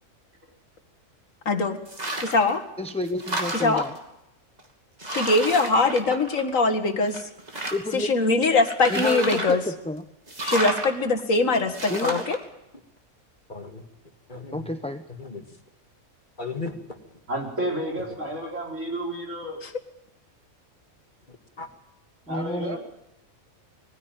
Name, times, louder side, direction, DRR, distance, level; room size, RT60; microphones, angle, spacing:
voice 1, 1.5-1.8 2.2-2.6 3.6-3.9 5.1-7.3 7.9-9.6 10.4-12.4, left 3 dB, 65° left, 8 dB, 2.2 m, -22 dB
sound 1, 1.9-2.5 2.9-4.0 4.6-4.7 5.0-6.7 7.1-8.0 8.7-9.6 10.3-10.9 11.7-12.4, right 1 dB, 30° right, 2.7 m, -31 dB
voice 2, 2.8-3.9 7.7-8.1 8.9-10.0 11.9-12.2 14.5-15.0 22.3-22.8, left 1 dB, 5° left, 8 dB, 0.6 m, -30 dB
voice 3, 13.5-13.8 14.3-14.7 15.2-15.4 16.4-16.7 21.6-21.7, left 4 dB, 35° left, 6 dB, 2.1 m, -35 dB
voice 4, 17.3-19.6 22.3-22.8, right 1 dB, 60° right, 0 dB, 4.9 m, -31 dB
20.5 x 15.5 x 9.0 m, 0.89 s
omnidirectional pair, 1.5 m